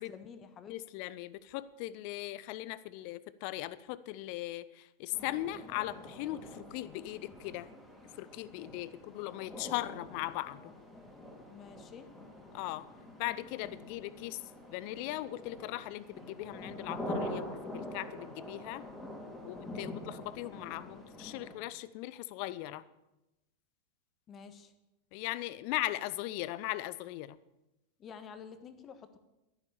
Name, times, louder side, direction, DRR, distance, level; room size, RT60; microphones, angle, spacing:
voice 1, 0.0-0.8 11.5-12.1 24.3-24.7 28.0-29.2, left 6 dB, 30° left, 11 dB, 1.4 m, -49 dB
voice 2, 0.7-7.7 8.2-10.7 12.5-12.9 13.2-14.4 14.7-18.9 19.5-22.8 25.1-27.4, left 16 dB, 45° left, 18 dB, 0.6 m, -39 dB
sound 1, 5.1-21.5, left 1 dB, 5° left, 3.7 m, -45 dB
12.5 x 11.5 x 6.9 m, 0.95 s
figure-of-eight pair, 90°, 0 cm